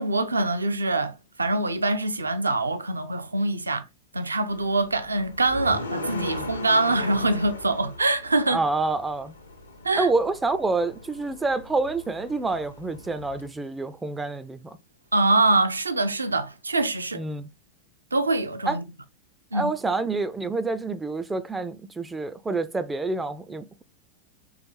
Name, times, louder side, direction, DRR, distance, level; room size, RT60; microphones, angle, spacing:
voice 1, 0.0-3.8 4.1-8.6 9.8-10.1 15.1-17.2 18.1-18.8 19.5-19.7, right 2 dB, 80° right, 0.4 m, -24 dB
sound 1, 4.5-13.5, left 2 dB, 75° left, 0.7 m, -38 dB
voice 2, 8.5-9.4 9.9-14.8 17.1-17.5 18.7-18.8 19.5-23.8, right 3 dB, 10° right, 0.3 m, -27 dB
4.0 x 3.2 x 3.0 m
figure-of-eight pair, 90°, 0 cm